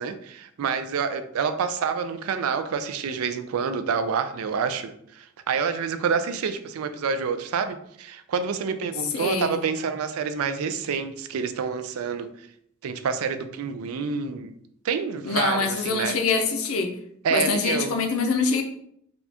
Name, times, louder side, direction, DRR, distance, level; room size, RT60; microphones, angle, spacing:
voice 1, 0.0-12.3 12.8-14.5 14.8-16.2 17.2-17.9, right 6 dB, 85° right, 9 dB, 0.4 m, -28 dB
voice 2, 9.1-9.6 15.3-16.9 17.3-18.6, left 4 dB, 80° left, 5 dB, 0.6 m, -24 dB
4.2 x 2.3 x 2.8 m, 0.70 s
head